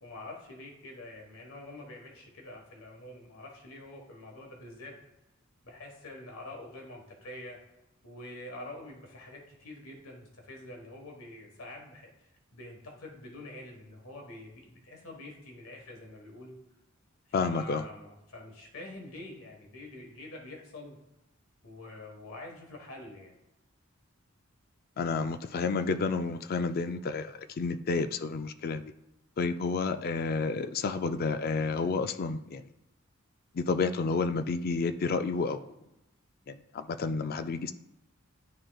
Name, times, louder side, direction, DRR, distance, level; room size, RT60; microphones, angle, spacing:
voice 1, 0.0-4.9 5.6-7.6 8.0-12.1 12.5-16.6 17.3-21.0 21.6-23.3, left 2 dB, 90° left, 1 dB, 1.4 m, -46 dB
voice 2, 17.3-17.8 25.0-28.9 29.4-32.7 33.5-35.7 36.5-37.7, left 4 dB, 45° left, 10 dB, 0.4 m, -30 dB
11.5 x 3.8 x 2.3 m, 0.92 s
head